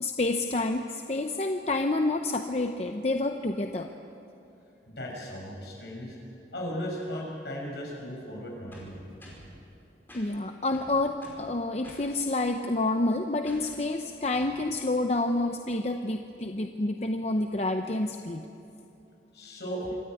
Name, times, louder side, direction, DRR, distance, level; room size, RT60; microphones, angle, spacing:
voice 1, 0.0-3.9 10.1-18.5, left 2 dB, 35° left, 5 dB, 0.7 m, -28 dB
voice 2, 4.9-6.2 6.5-9.0 19.3-19.8, equal, 70° left, -2 dB, 6.7 m, -36 dB
sound 1, 8.7-9.5 10.1-10.3 10.7-11.5 11.8-12.1 13.5-13.8 14.3-14.6, equal, 10° left, 5.1 m, -49 dB
26.0 x 13.0 x 9.1 m, 2.8 s
head